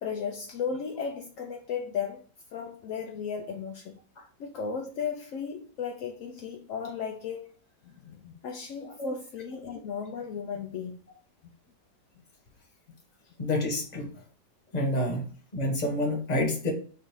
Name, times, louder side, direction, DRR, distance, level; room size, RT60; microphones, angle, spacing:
voice 1, 0.0-2.2 2.5-4.0 4.4-7.5 7.8-11.0 13.2-13.3 15.2-15.3, left 6 dB, 75° left, 0.7 m, -35 dB
voice 2, 8.8-9.1 13.4-14.1 14.7-16.7, left 1 dB, 30° left, 1.0 m, -28 dB
4.5 x 2.5 x 4.5 m
omnidirectional pair, 1.9 m